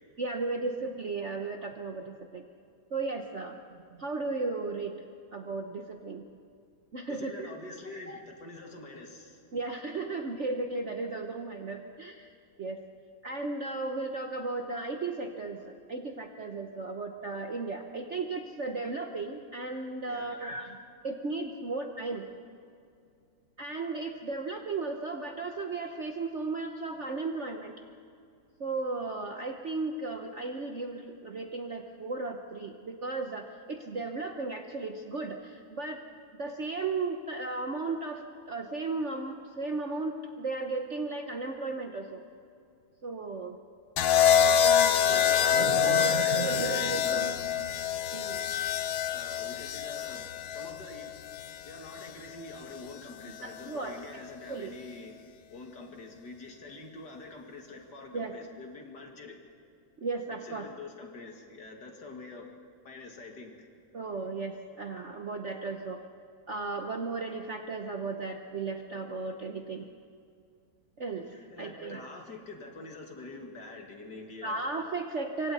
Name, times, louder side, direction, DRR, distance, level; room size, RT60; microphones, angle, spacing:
voice 1, 0.2-2.4 2.9-3.6 4.0-5.0 5.3-6.3 6.9-8.2 9.5-12.3 12.6-12.8 13.2-20.8 21.0-22.2 23.6-27.7 28.6-36.0 36.4-42.2 43.0-43.6 44.4-47.7 48.1-48.4 53.4-54.2 54.5-54.7 58.1-58.3 60.0-60.7 63.9-66.0 66.5-69.9 71.0-72.1 74.4-75.5, right 3 dB, 45° right, 4 dB, 1.0 m, -35 dB
voice 2, 7.1-9.4 20.1-20.4 45.0-47.4 49.1-51.1 51.7-55.1 55.5-59.4 60.3-62.5 62.8-63.5 71.5-74.6, left 3 dB, 55° left, 2 dB, 2.7 m, -46 dB
sound 1, 44.0-52.1 53.3-53.7, left 9 dB, 80° left, 1.6 m, -26 dB
26.5 x 24.0 x 4.2 m, 2.5 s
omnidirectional pair, 2.2 m